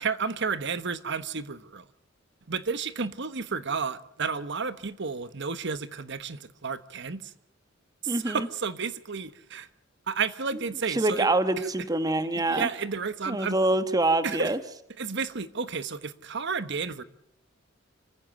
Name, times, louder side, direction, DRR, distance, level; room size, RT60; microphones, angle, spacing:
voice 1, 0.0-1.8 2.5-7.3 8.0-9.7 10.1-11.3 11.6-11.7 12.5-13.6 14.2-14.5 15.0-17.0, right 5 dB, 60° right, 1.2 m, -32 dB
voice 2, 8.1-8.5 10.9-12.7 13.3-14.6, right 2 dB, 20° right, 1.2 m, -25 dB
27.0 x 15.0 x 9.0 m
head